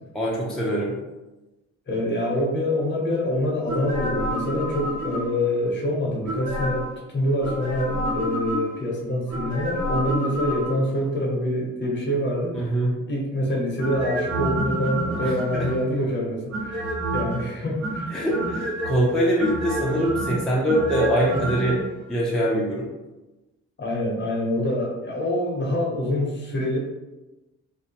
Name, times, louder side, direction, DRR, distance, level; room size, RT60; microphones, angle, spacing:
voice 1, 0.1-0.9 12.5-12.9 15.2-15.7 18.1-21.8 22.1-22.9, right 1 dB, ahead, -5 dB, 0.6 m, -23 dB
voice 2, 1.9-6.8 7.1-12.7 13.1-16.9 17.1-18.2 23.8-26.8, left 1 dB, 40° left, -2 dB, 0.8 m, -25 dB
sound 1, 3.7-5.5 6.2-7.0 7.4-8.8 9.3-11.0 13.8-15.9 16.5-17.4 17.8-19.0 19.4-21.8 22.0-22.1, right 1 dB, 65° right, 1.1 m, -29 dB
2.6 x 2.1 x 2.9 m, 1.1 s
cardioid pair, 90°, 30 cm